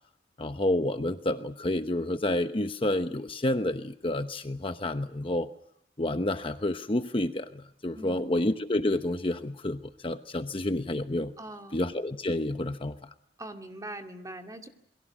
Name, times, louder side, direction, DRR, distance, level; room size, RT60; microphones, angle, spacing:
voice 1, 0.4-5.5 6.0-11.3 11.7-13.0, left 1 dB, 30° left, 8 dB, 1.0 m, -29 dB
voice 2, 7.9-8.3 11.4-11.8 13.4-14.7, right 1 dB, 20° right, 4 dB, 2.4 m, -42 dB
28.0 x 22.5 x 6.2 m, 0.76 s
head